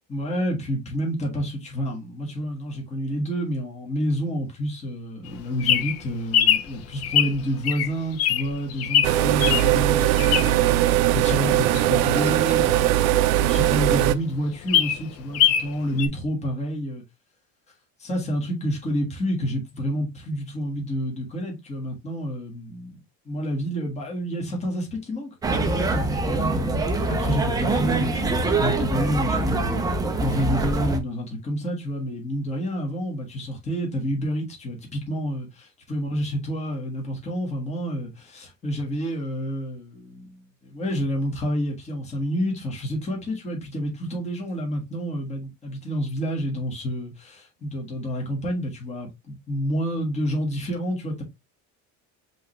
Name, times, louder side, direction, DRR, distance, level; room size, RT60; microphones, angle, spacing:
voice 1, 0.1-12.9 13.4-17.0 18.0-23.0 23.2-29.8 30.2-51.2, equal, 20° left, 1.5 m, -29 dB
Bird vocalization bird call bird song, 5.3-10.7 11.2-13.3 13.7-13.8 14.0-14.1 14.5-15.7 16.0-16.1, left 9 dB, 45° left, 0.7 m, -23 dB
sound 1, 9.0-14.1, right 13 dB, 65° right, 0.6 m, -20 dB
sound 2, 25.4-31.0, right 2 dB, 10° right, 0.5 m, -24 dB
5.3 x 3.3 x 3.0 m
cardioid pair, 170°, 36 cm